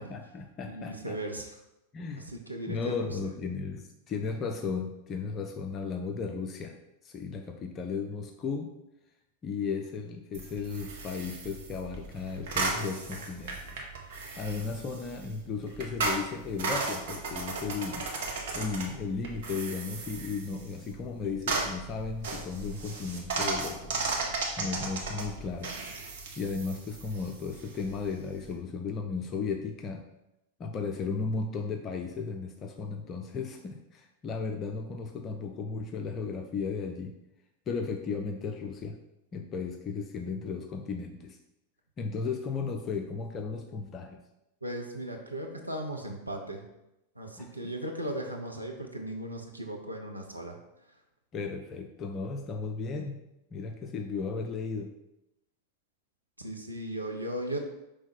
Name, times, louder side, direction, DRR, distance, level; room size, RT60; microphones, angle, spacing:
voice 1, 0.0-1.2 1.9-2.3 2.7-6.8 7.0-8.7 9.4-13.8 14.4-18.1 18.5-24.0 24.6-25.7 26.4-30.0 30.6-37.1 37.7-39.0 39.3-41.4 42.0-44.2 47.4-47.5 51.3-53.2 53.5-54.9, left 5 dB, 30° left, 4 dB, 0.5 m, -35 dB
voice 2, 0.7-1.6 2.3-3.2 44.6-46.6 47.1-50.6 56.4-57.6, right 1 dB, 90° right, 1 dB, 0.9 m, -37 dB
sound 1, 10.3-28.6, right 3 dB, 55° right, 1.1 m, -36 dB
5.4 x 3.5 x 5.3 m, 0.90 s
figure-of-eight pair, 90°, 0 cm